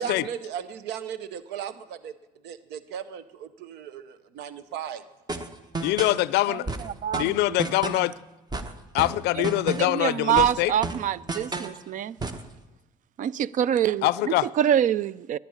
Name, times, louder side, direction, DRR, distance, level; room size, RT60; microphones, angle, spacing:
voice 1, 0.0-2.1 2.4-5.0, right 8 dB, 85° right, 0.8 m, -36 dB
sound 1, 5.3-6.2 6.7-8.1 8.5-10.0 10.4-11.8 12.2-12.5, right 3 dB, 25° right, 1.1 m, -32 dB
voice 2, 5.8-6.7 7.2-8.1 8.9-10.7 14.0-14.5, left 17 dB, 80° left, 0.4 m, -24 dB
voice 3, 6.5-7.6 9.4-9.5 9.8-12.2 13.2-15.4, right 10 dB, 50° right, 0.4 m, -26 dB
11.0 x 10.0 x 9.6 m
cardioid pair, 110°, 17 cm